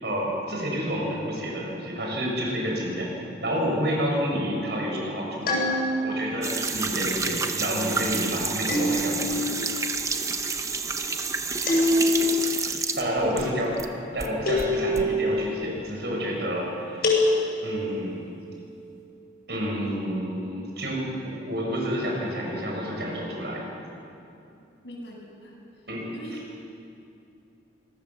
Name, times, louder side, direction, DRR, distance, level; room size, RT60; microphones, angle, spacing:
voice 1, 0.0-3.1 3.4-5.6 6.0-9.4 13.0-13.7 14.1-17.0 17.6-18.2 19.5-23.7 25.9-26.4, equal, 65° right, -2 dB, 6.9 m, -29 dB
sound 1, 5.5-6.3 8.7-9.5 11.7-12.5 14.5-15.3 17.0-17.9, left 1 dB, 55° left, 7.0 m, -24 dB
sound 2, 6.4-13.9 14.2-15.1, right 4 dB, 15° right, 0.8 m, -29 dB
voice 2, 11.6-12.2 13.2-13.5 24.8-25.5 26.1-26.4, equal, 75° left, -2 dB, 7.4 m, -42 dB
25.0 x 19.5 x 7.4 m, 2.7 s
head